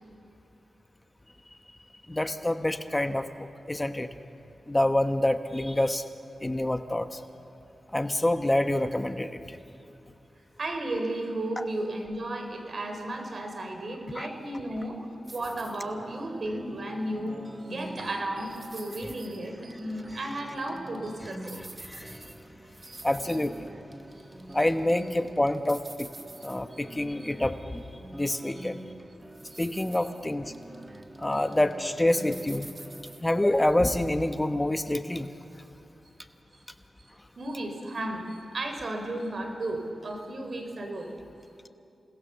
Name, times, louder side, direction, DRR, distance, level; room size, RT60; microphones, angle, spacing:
voice 1, 2.1-4.1 4.7-6.1 6.4-7.2 7.9-9.6 11.6-11.7 14.1-14.3 21.6-22.2 23.0-23.5 24.5-26.1 26.4-28.8 29.6-30.5 31.2-32.7 33.2-35.3, left 1 dB, 20° left, 9 dB, 1.1 m, -27 dB
voice 2, 10.6-15.1 15.3-17.4 17.6-21.6 22.0-22.2 22.8-23.1 24.5-24.6 26.7-26.8 29.5-29.6 37.4-41.1, right 1 dB, 60° right, 4 dB, 4.2 m, -34 dB
sound 1, 15.3-33.2, right 1 dB, 25° right, 1.5 m, -45 dB
28.5 x 19.5 x 7.0 m, 2.6 s
cardioid pair, 45°, 0 cm